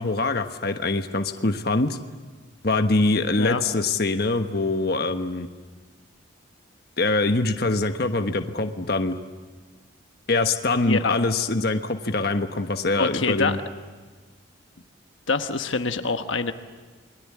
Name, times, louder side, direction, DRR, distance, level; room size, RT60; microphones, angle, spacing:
voice 1, 0.0-2.0 2.6-5.5 7.0-9.1 10.3-13.6, left 2 dB, 50° left, 7 dB, 1.3 m, -24 dB
voice 2, 10.8-11.2 13.0-13.6 15.3-16.5, left 4 dB, 75° left, 7 dB, 1.2 m, -25 dB
29.0 x 22.0 x 8.6 m, 1.4 s
head